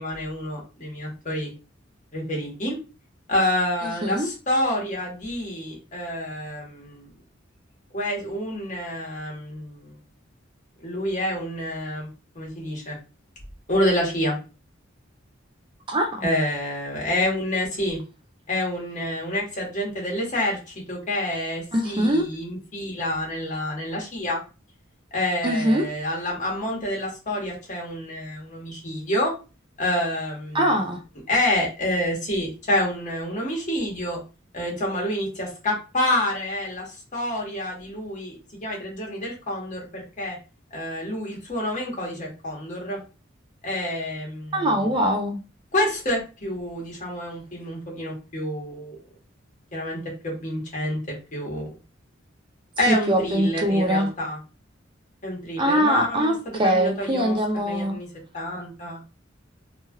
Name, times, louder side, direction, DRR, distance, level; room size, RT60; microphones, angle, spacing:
voice 1, 0.0-1.5 2.1-2.8 3.3-7.1 7.9-10.0 10.8-12.1 12.3-13.0 13.7-14.3 16.2-18.0 18.5-24.4 25.1-29.3 29.8-30.7 31.3-34.2 34.5-40.4 40.7-43.0 43.6-44.7 45.7-48.9 49.7-51.0 51.3-51.7 52.8-54.4 55.2-56.3 56.6-57.4 57.6-58.1 58.3-59.0, left 1 dB, 40° left, 1.4 m, -28 dB
voice 2, 15.9-16.3 21.7-22.3 25.4-25.9 30.5-31.0 44.5-45.4 52.9-54.1 55.6-58.0, equal, 25° right, 0.4 m, -22 dB
3.1 x 2.9 x 2.3 m
head